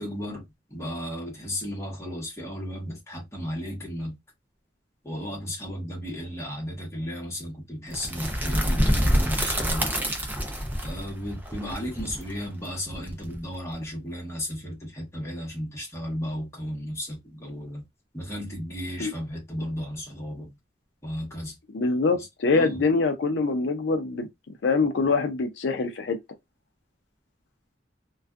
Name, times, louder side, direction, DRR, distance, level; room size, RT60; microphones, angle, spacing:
voice 1, 0.0-4.2 5.0-9.9 10.8-17.8 18.1-20.5 21.0-21.5 22.5-22.8, equal, 15° left, 1.1 m, -34 dB
sound 1, 7.9-13.7, equal, 10° right, 0.5 m, -27 dB
voice 2, 21.7-24.3 24.6-26.2, left 4 dB, 80° left, 0.4 m, -24 dB
2.5 x 2.3 x 2.3 m
head